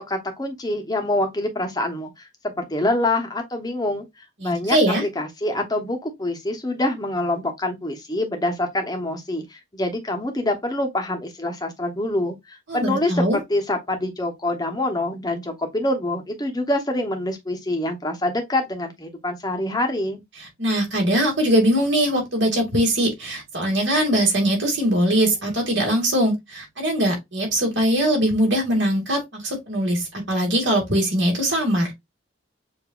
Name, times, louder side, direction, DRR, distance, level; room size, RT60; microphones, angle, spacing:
voice 1, 0.0-4.0 4.4-20.2, left 1 dB, 20° left, 0.9 m, -26 dB
voice 2, 4.4-5.0 12.7-13.4 20.6-31.9, right 1 dB, 65° right, 2.2 m, -21 dB
6.9 x 2.7 x 2.4 m
head